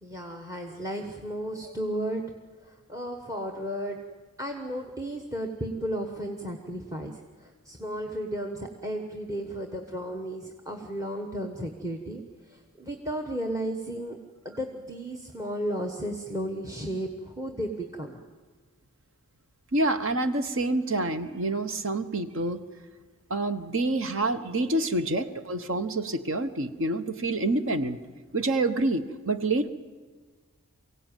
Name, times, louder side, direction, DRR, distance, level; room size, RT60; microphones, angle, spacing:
voice 1, 0.0-2.2 2.6-4.0 4.4-14.2 14.4-18.2, right 1 dB, 15° right, 4 dB, 1.2 m, -34 dB
voice 2, 19.7-22.6 23.3-28.0 28.3-29.7, right 2 dB, 60° right, 10 dB, 1.1 m, -27 dB
23.5 x 16.5 x 9.1 m, 1.4 s
head